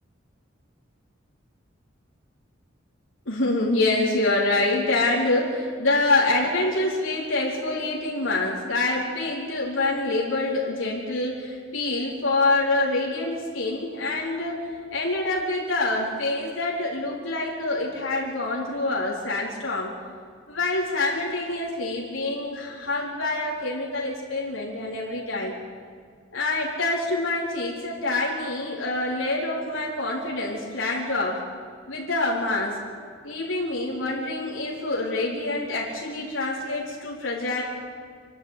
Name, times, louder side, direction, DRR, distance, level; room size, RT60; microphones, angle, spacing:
voice 1, 3.3-19.9 20.5-25.6 26.3-31.4 31.9-32.8 33.2-37.6, left 2 dB, 90° left, -4 dB, 4.2 m, -26 dB
26.0 x 12.0 x 9.1 m, 2.1 s
head